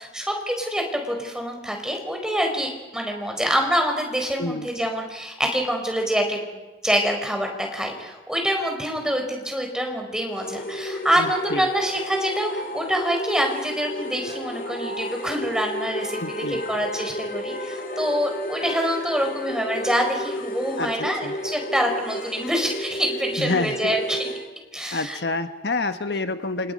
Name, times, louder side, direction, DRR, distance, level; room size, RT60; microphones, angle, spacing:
voice 1, 0.0-24.2 24.7-25.2 26.1-26.2, equal, 5° right, 2 dB, 4.4 m, -26 dB
sound 1, 10.3-24.5, equal, 50° left, 2.5 m, -32 dB
voice 2, 11.2-11.7 16.2-16.6 20.8-21.3 23.4-23.9 24.9-26.7, left 3 dB, 70° left, 9 dB, 1.2 m, -28 dB
29.5 x 28.0 x 5.4 m, 1.2 s
head